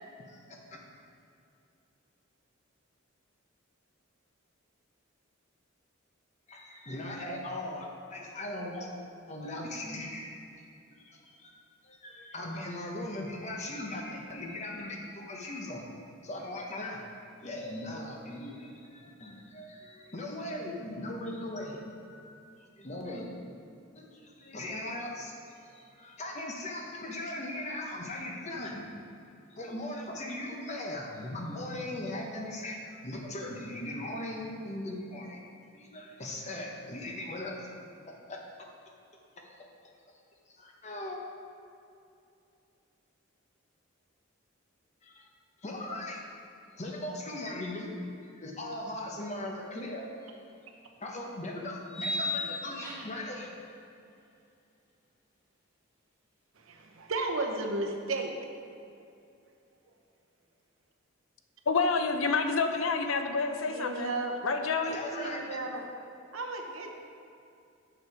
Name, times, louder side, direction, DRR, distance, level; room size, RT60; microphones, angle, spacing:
voice 1, 0.3-0.8 6.5-8.9 9.3-10.6 10.9-11.5 11.8-15.8 16.2-17.0 17.4-22.4 22.8-23.3 23.9-29.0 29.5-35.4 35.7-37.7 38.1-38.4 39.4-39.5 40.5-41.2 45.0-45.3 45.6-46.3 46.8-50.1 51.0-53.6 64.8-65.6, left 1 dB, 35° left, 0 dB, 1.0 m, -39 dB
sound 1, 50.2-50.3 51.9-53.3, left 2 dB, 10° left, 1.7 m, -35 dB
voice 2, 56.5-58.3 63.6-64.4 65.1-65.8 66.3-66.9, right 2 dB, 80° right, 3 dB, 0.9 m, -34 dB
voice 3, 61.7-64.1 64.4-65.0, left 4 dB, 80° left, 6 dB, 0.6 m, -28 dB
6.9 x 6.4 x 4.9 m, 2.6 s
head